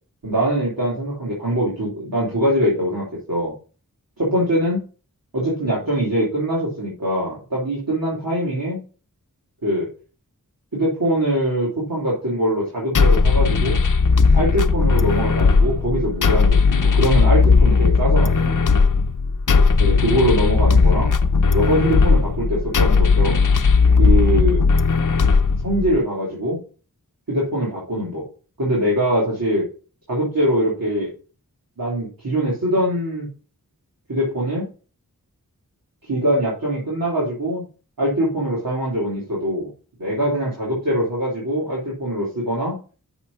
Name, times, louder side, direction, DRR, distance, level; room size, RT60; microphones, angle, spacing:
voice 1, 0.2-3.5 4.2-4.8 5.3-8.8 9.6-9.9 10.7-13.8 14.3-18.7 19.8-21.1 21.5-23.4 24.0-24.6 25.6-26.6 27.3-28.2 28.6-29.7 30.1-31.1 31.8-33.3 34.1-34.7 36.0-37.6 38.0-39.7 40.0-42.7, equal, 90° right, -7 dB, 3.5 m, -22 dB
sound 1, 12.9-26.0, left 4 dB, 60° left, 0.7 m, -17 dB
7.2 x 6.5 x 5.5 m, 0.38 s
wide cardioid pair, 50°, 34 cm